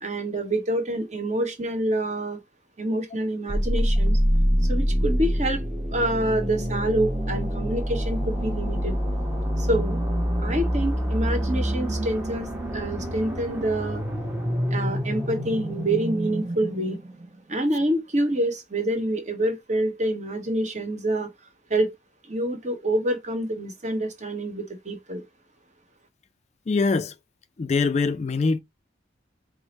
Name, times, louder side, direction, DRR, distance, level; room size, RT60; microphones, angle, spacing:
voice 1, 0.0-2.4 2.8-4.2 4.6-5.6 5.9-9.0 9.6-10.0 10.4-14.0 14.7-17.0 17.5-21.3 21.7-21.9 22.3-25.2, right 1 dB, 40° right, 1.0 m, -27 dB
sound 1, 3.5-17.3, equal, 10° right, 0.7 m, -26 dB
voice 2, 26.7-27.1 27.6-28.6, left 4 dB, 35° left, 0.3 m, -23 dB
4.7 x 2.0 x 4.0 m
head